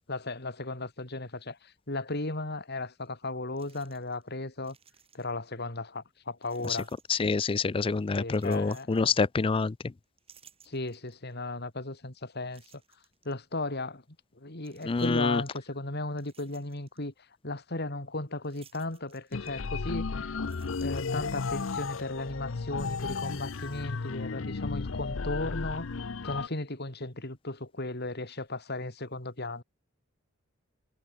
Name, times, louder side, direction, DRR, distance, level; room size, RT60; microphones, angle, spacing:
voice 1, 0.1-4.8 5.1-6.9 8.1-9.1 10.6-12.8 13.2-14.0 14.4-17.1 17.4-20.4 20.8-25.9 26.2-29.6, left 2 dB, 50° left, 3.7 m, -36 dB
sound 1, 3.0-3.1 3.6-4.3 4.5-5.5 6.4-7.7 8.2-9.6 10.0-11.3 11.8-11.9 12.5-13.3 14.6-15.4 15.9-17.0 18.4-20.0 20.3-21.5, right 7 dB, 30° right, 7.5 m, -60 dB
voice 2, 7.1-9.9 14.8-15.4, left 4 dB, 25° left, 0.4 m, -27 dB
sound 2, 19.3-26.5, left 4 dB, 70° left, 0.7 m, -34 dB
head